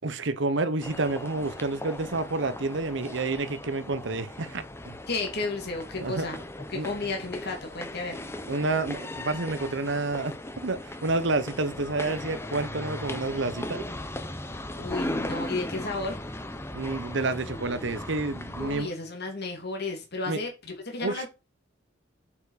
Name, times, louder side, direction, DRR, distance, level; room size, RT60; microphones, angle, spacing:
voice 1, 0.0-5.0 6.0-6.4 6.7-6.9 8.5-10.3 10.6-13.8 16.7-18.9 20.3-20.4 21.0-21.3, right 3 dB, 65° right, 0.9 m, -29 dB
sound 1, 0.8-18.8, left 1 dB, 15° left, 0.8 m, -38 dB
voice 2, 5.1-6.4 6.7-8.2 14.5-16.2 18.6-21.3, left 3 dB, 55° left, 2.7 m, -33 dB
7.2 x 7.0 x 5.0 m
head